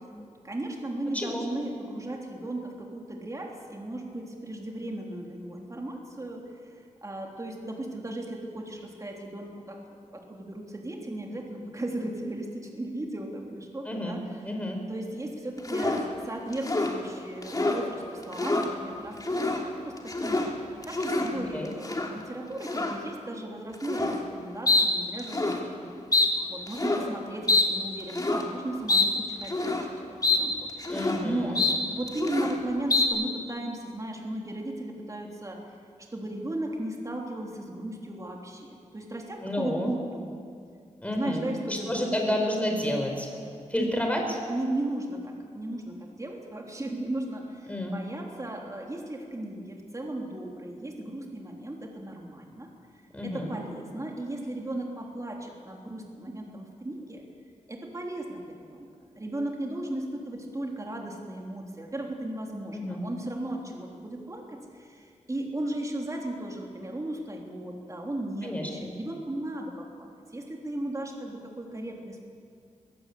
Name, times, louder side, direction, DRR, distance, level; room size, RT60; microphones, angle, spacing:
voice 1, 0.5-6.4 7.0-9.8 10.3-12.5 12.7-14.2 14.9-18.0 18.2-19.3 19.6-19.9 20.2-20.4 20.9-26.0 26.5-29.8 30.3-30.5 31.2-31.6 31.9-35.6 36.1-38.6 38.9-39.2 39.6-40.3 41.1-42.4 43.7-44.1 44.5-45.2 45.5-47.4 47.8-52.7 53.2-55.4 55.6-57.2 57.7-58.5 59.2-64.4 65.3-69.7 70.0-70.1 70.3-72.1, right 1 dB, 25° right, 0 dB, 3.4 m, -35 dB
voice 2, 1.1-1.4 13.8-14.2 14.4-14.8 21.5-21.7 30.9-31.7 39.4-39.9 41.0-41.4 41.7-43.3 43.7-44.2 47.7-48.0 53.1-53.5 62.7-63.0 68.4-68.9, left 1 dB, 10° left, 2 dB, 4.9 m, -30 dB
sound 1, 15.6-16.1 16.5-16.9 17.4-17.8 18.2-18.7 19.2-19.6 20.0-20.5 20.8-21.3 21.8-22.1 22.6-23.0 23.8-24.2 24.7-24.9 25.2-25.6 26.1-26.3 26.7-27.1 27.5-27.7 28.1-28.4 28.9-29.1 29.4-29.9 30.2-30.4 30.7-31.2 31.5-31.8 32.1-32.6 32.9-33.0, left 3 dB, 30° left, 3.0 m, -25 dB
23.5 x 17.0 x 8.4 m, 2.3 s
wide cardioid pair, 100°, 13 cm